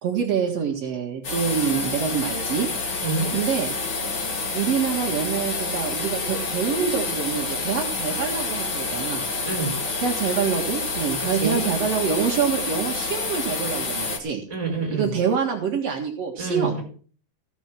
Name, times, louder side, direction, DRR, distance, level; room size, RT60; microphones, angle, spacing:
voice 1, 0.0-2.7 3.3-3.7 4.5-9.2 10.0-14.4 14.9-16.8, right 7 dB, 75° right, 1 dB, 1.4 m, -26 dB
sound 1, 1.2-14.2, left 3 dB, 65° left, 1.2 m, -28 dB
voice 2, 3.0-3.4 9.4-9.8 11.2-11.7 14.5-15.2 16.4-16.8, right 3 dB, 10° right, 1 dB, 4.4 m, -27 dB
16.0 x 7.2 x 6.0 m, 0.42 s
omnidirectional pair, 5.4 m